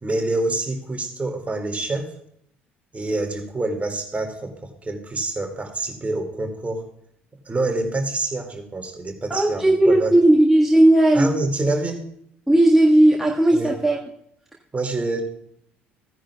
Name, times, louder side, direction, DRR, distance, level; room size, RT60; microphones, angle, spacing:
voice 1, 0.0-2.1 2.9-6.8 7.5-10.1 11.1-12.0 13.5-13.7 14.7-15.2, right 2 dB, 20° right, 4 dB, 2.3 m, -26 dB
voice 2, 9.3-11.3 12.5-14.0, right 1 dB, 5° right, -3 dB, 1.6 m, -16 dB
15.5 x 10.0 x 2.3 m, 0.68 s
figure-of-eight pair, 55°, 6 cm